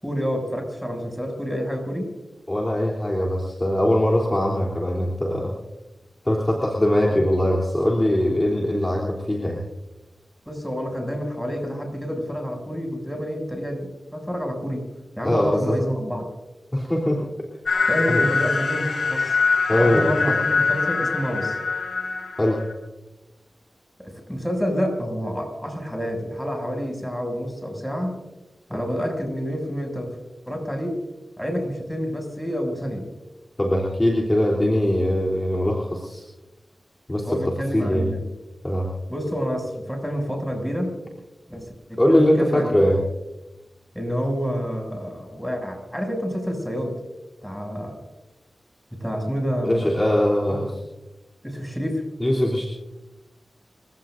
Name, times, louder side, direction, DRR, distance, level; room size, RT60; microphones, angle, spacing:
voice 1, 0.0-2.1 7.1-7.2 10.5-14.9 15.2-16.3 17.8-19.4 19.7-21.6 24.0-28.2 28.7-30.2 30.5-31.0 31.4-33.1 37.3-38.2 39.1-40.9 41.5-42.8 43.9-47.0 47.4-48.0 48.9-50.0 50.5-50.6 51.4-52.0, equal, ahead, 2 dB, 7.1 m, -28 dB
voice 2, 2.5-5.5 6.3-9.6 15.2-15.8 16.7-17.3 18.1-18.2 19.7-20.1 22.4-22.6 33.6-36.2 37.1-37.3 37.7-38.1 38.6-38.9 42.0-43.0 49.6-50.7 52.2-52.7, left 1 dB, 20° left, -3 dB, 3.4 m, -21 dB
sound 1, 17.7-22.7, left 4 dB, 85° left, 4.7 m, -23 dB
30.0 x 16.5 x 2.6 m, 1.0 s
cardioid pair, 50°, 0 cm